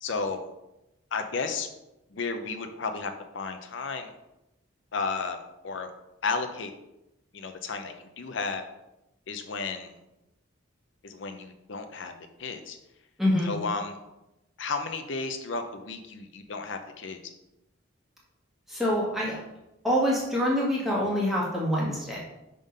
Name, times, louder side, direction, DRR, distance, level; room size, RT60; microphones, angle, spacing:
voice 1, 0.0-0.4 1.1-1.7 2.1-4.1 4.9-5.4 5.6-5.9 6.2-6.7 7.3-8.6 9.3-9.9 11.0-12.1 12.4-12.8 13.4-14.0 14.6-17.2, left 4 dB, 65° left, 7 dB, 0.6 m, -33 dB
voice 2, 13.2-13.5 18.7-19.4 19.8-22.2, equal, ahead, -5 dB, 1.6 m, -25 dB
5.4 x 3.7 x 5.3 m, 0.91 s
head